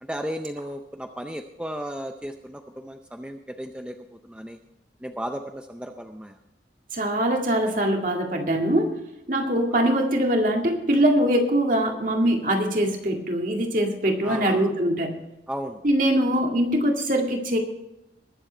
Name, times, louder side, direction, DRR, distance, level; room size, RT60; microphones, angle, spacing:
voice 1, 0.0-4.6 5.0-6.4 14.2-14.7 15.5-15.8, equal, 5° right, 5 dB, 0.5 m, -35 dB
voice 2, 6.9-9.0 9.3-15.2 15.8-17.6, right 1 dB, 45° right, 2 dB, 2.0 m, -22 dB
21.0 x 7.4 x 4.5 m, 0.89 s
head